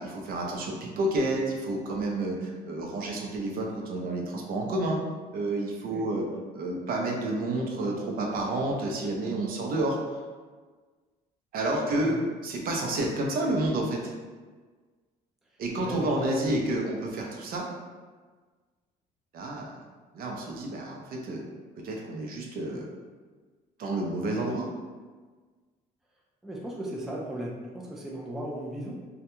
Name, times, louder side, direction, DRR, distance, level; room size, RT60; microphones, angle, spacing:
voice 1, 0.0-5.0 5.3-6.3 6.5-10.0 11.5-12.2 12.4-14.1 15.6-17.7 19.3-19.7 20.1-21.4 21.8-22.9 23.8-24.7, right 2 dB, 60° right, -1 dB, 0.5 m, -30 dB
voice 2, 15.8-16.4 26.4-29.1, right 1 dB, ahead, -3 dB, 0.4 m, -36 dB
2.3 x 2.1 x 2.9 m, 1.4 s
cardioid pair, 110°, 17 cm